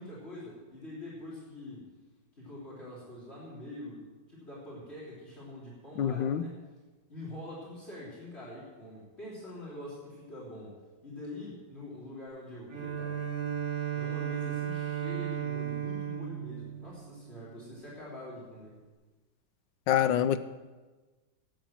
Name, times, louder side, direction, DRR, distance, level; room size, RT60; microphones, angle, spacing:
voice 1, 0.0-1.8 2.4-6.5 7.1-10.7 11.0-13.2 13.9-18.8, left 1 dB, 35° left, -6 dB, 3.7 m, -44 dB
voice 2, 6.0-6.5 19.9-20.4, left 9 dB, 90° left, 13 dB, 1.4 m, -26 dB
Bowed string instrument, 12.7-17.8, right 10 dB, 55° right, 1.8 m, -35 dB
12.5 x 9.0 x 7.5 m, 1.3 s
omnidirectional pair, 1.9 m